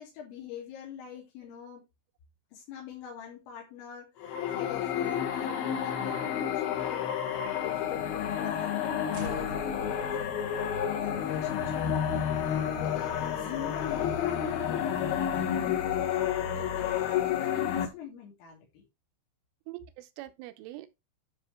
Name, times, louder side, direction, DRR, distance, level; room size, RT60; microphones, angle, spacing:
voice 1, 0.0-1.8 2.5-4.2 4.5-10.5 10.9-12.0 12.3-16.1 16.5-18.9, left 9 dB, 90° left, 5.5 m, -44 dB
sound 1, 4.2-17.9, left 9 dB, 65° left, 2.8 m, -30 dB
sound 2, 9.1-15.4, right 2 dB, 55° right, 1.3 m, -49 dB
voice 2, 19.7-20.9, right 17 dB, 80° right, 3.2 m, -44 dB
12.0 x 5.4 x 3.4 m
omnidirectional pair, 5.7 m